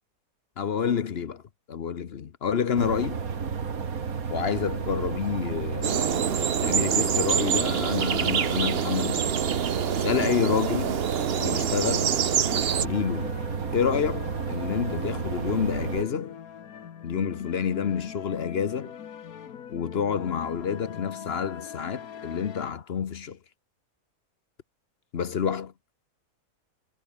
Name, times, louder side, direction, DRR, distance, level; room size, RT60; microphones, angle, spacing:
voice 1, 0.6-1.4 1.7-3.2 4.3-9.4 10.0-11.0 11.4-12.2 12.8-13.4 13.7-16.4 17.0-19.0 19.7-23.4 25.1-25.7, left 7 dB, 50° left, 1.0 m, -28 dB
sound 1, 2.7-16.0, right 6 dB, 80° right, 2.3 m, -32 dB
sound 2, 5.8-12.9, right 8 dB, 50° right, 1.0 m, -26 dB
sound 3, 12.3-22.7, left 8 dB, 85° left, 1.7 m, -42 dB
omnidirectional pair, 1.5 m